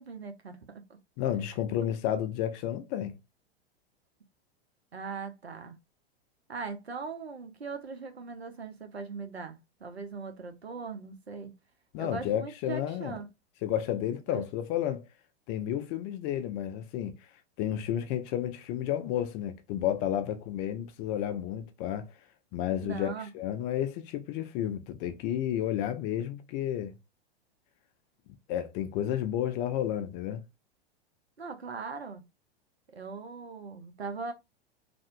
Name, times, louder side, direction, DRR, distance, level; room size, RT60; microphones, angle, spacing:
voice 1, 0.0-1.0 4.9-5.8 6.5-11.5 12.0-13.3 14.3-14.4 22.8-23.3 31.4-32.2 32.9-34.3, right 4 dB, 85° right, 0.8 m, -40 dB
voice 2, 1.2-3.2 11.9-13.2 13.6-15.0 15.5-17.2 17.6-22.1 22.5-26.9 28.5-30.4, left 11 dB, 35° left, 0.6 m, -31 dB
3.3 x 2.6 x 2.5 m
figure-of-eight pair, 95°, 31 cm